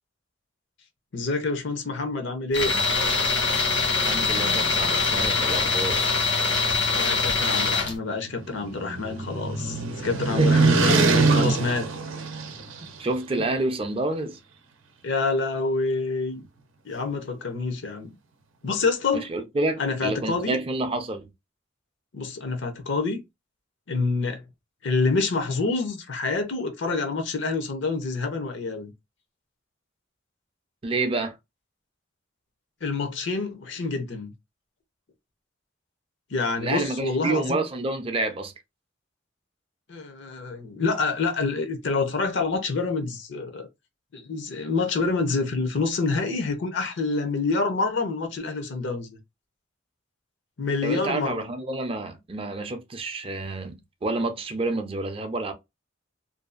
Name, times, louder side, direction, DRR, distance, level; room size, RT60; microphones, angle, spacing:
voice 1, 1.1-2.7 6.9-11.9 15.0-16.4 16.8-18.1 18.6-19.3 19.8-20.6 22.1-23.2 23.9-24.4 24.8-28.9 32.8-34.3 36.3-37.6 39.9-43.7 44.1-49.2 50.6-51.5, left 3 dB, 65° left, 0.6 m, -27 dB
Tools, 2.5-7.9, left 4 dB, 80° left, 1.4 m, -23 dB
voice 2, 4.0-6.0 10.4-10.7 13.0-14.4 19.1-21.3 30.8-31.4 36.6-38.5 50.8-55.5, right 2 dB, 30° right, 0.5 m, -28 dB
sound 1, 8.1-12.9, right 4 dB, 80° right, 0.6 m, -23 dB
2.6 x 2.3 x 2.4 m
head